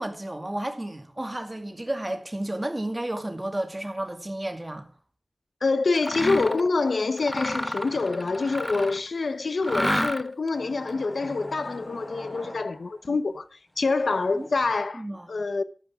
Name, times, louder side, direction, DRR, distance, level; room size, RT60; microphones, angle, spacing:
voice 1, 0.0-4.9 14.3-14.5 14.9-15.4, right 1 dB, 25° right, 2.3 m, -32 dB
voice 2, 5.6-13.4 13.8-15.0 15.3-15.6, left 3 dB, 90° left, 0.9 m, -26 dB
Mechanisms, 5.9-6.7 7.2-9.1 9.6-10.5, equal, 10° left, 0.6 m, -30 dB
sound 1, 7.2-9.3 10.5-13.2 13.7-14.8, equal, 30° left, 6.3 m, -46 dB
13.0 x 12.5 x 3.7 m
wide cardioid pair, 70°, 0 cm